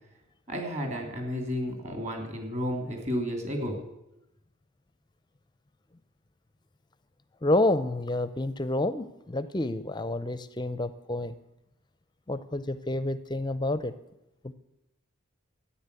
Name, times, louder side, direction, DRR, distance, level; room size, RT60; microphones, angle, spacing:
voice 1, 0.5-3.8, equal, 35° right, 3 dB, 3.0 m, -32 dB
voice 2, 7.4-11.4 12.3-13.9 14.4-14.5, left 2 dB, 20° left, 13 dB, 0.5 m, -29 dB
13.5 x 9.9 x 8.3 m, 0.89 s
head